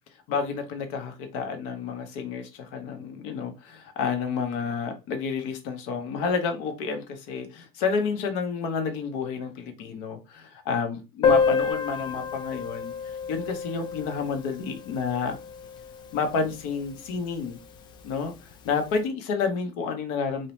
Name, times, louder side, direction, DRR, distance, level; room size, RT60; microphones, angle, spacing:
voice 1, 0.3-12.9 13.3-15.4 16.1-17.6 18.0-20.5, left 5 dB, 65° left, 0.7 m, -30 dB
Piano, 11.2-16.6 16.8-16.9 17.2-17.3 17.6-17.7 18.5-18.7, left 5 dB, 35° left, 0.4 m, -28 dB
2.7 x 2.0 x 2.9 m
supercardioid pair, 130°, 12 cm